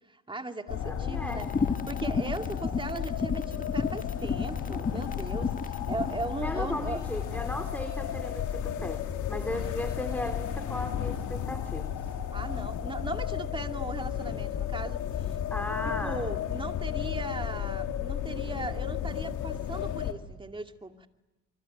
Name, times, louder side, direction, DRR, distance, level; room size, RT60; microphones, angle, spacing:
voice 1, 0.1-1.5 1.9-7.0 9.5-9.7 12.3-15.4 15.8-21.1, right 2 dB, 15° right, 6 dB, 2.4 m, -38 dB
sound 1, 0.7-20.1, left 9 dB, 75° left, 2.6 m, -33 dB
voice 2, 0.8-1.8 6.4-12.0 15.5-16.2, left 1 dB, 5° left, 7 dB, 3.2 m, -36 dB
sound 2, 1.4-6.2, left 5 dB, 25° left, 1.6 m, -32 dB
25.5 x 25.0 x 9.2 m, 1.0 s
cardioid pair, 90°, 30 cm